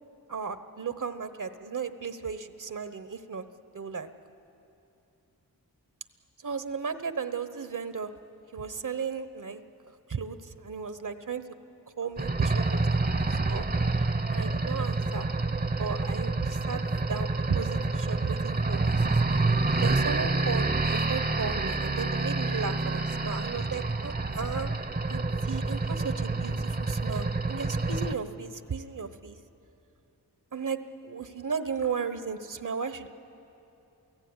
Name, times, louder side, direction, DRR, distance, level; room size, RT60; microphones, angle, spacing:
voice 1, 0.3-3.4 3.7-4.1 6.4-8.1 8.5-9.6 10.1-11.4 12.0-13.7 14.3-15.3 15.7-16.8 17.1-19.0 19.3-19.4 19.8-24.7 25.1-29.4 30.5-33.1, right 5 dB, 55° right, 10 dB, 1.1 m, -35 dB
sound 1, 12.2-28.1, right 3 dB, 25° right, 0.8 m, -28 dB
28.5 x 16.5 x 9.7 m, 2.8 s
wide cardioid pair, 110°, 37 cm